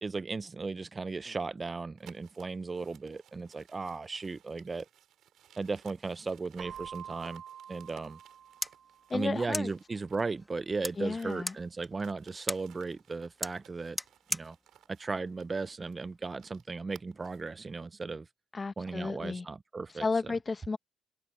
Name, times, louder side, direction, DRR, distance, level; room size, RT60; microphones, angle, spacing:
voice 1, 0.0-4.9 5.6-7.4 7.7-8.2 9.1-14.0 14.3-14.6 14.9-18.3 18.8-20.3, right 4 dB, 30° right, 0.5 m, -36 dB
sound 1, 2.0-10.4 10.7-17.5, right 11 dB, 75° right, 2.9 m, -61 dB
Keyboard (musical), 6.6-9.3, right 9 dB, 55° right, 1.2 m, -47 dB
sound 2, 8.2-16.2, left 1 dB, 5° left, 2.0 m, -42 dB
voice 2, 9.1-9.7 11.0-11.5 18.5-19.5 20.0-20.8, left 4 dB, 30° left, 0.9 m, -33 dB
open air
cardioid pair, 90°, 0 cm